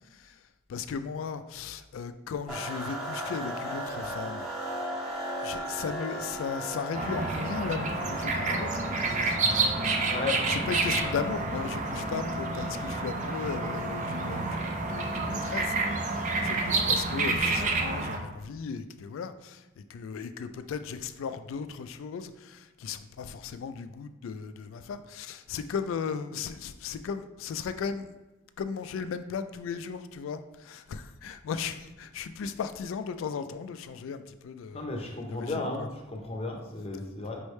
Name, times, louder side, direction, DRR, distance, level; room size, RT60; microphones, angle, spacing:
voice 1, 0.1-0.4 0.7-4.5 5.2-10.1 10.5-28.1 28.6-34.8 35.3-35.9, left 6 dB, 80° left, 11 dB, 0.3 m, -36 dB
sound 1, 2.5-17.0, equal, ahead, 1.2 m, -38 dB
sound 2, 6.9-18.2, right 3 dB, 40° right, 0.4 m, -29 dB
voice 2, 10.0-10.4 34.7-37.4, left 3 dB, 30° left, 1 dB, 0.6 m, -34 dB
5.3 x 3.2 x 3.1 m, 1.1 s
head